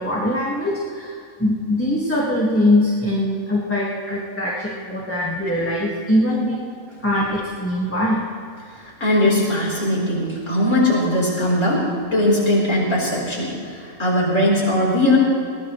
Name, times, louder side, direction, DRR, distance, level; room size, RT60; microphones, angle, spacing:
voice 1, 0.0-6.6 7.0-8.2, left 1 dB, 10° left, -5 dB, 1.7 m, -22 dB
voice 2, 9.0-11.8 12.1-15.2, left 1 dB, 55° left, -4 dB, 4.6 m, -19 dB
21.5 x 18.0 x 3.2 m, 2.4 s
omnidirectional pair, 1.6 m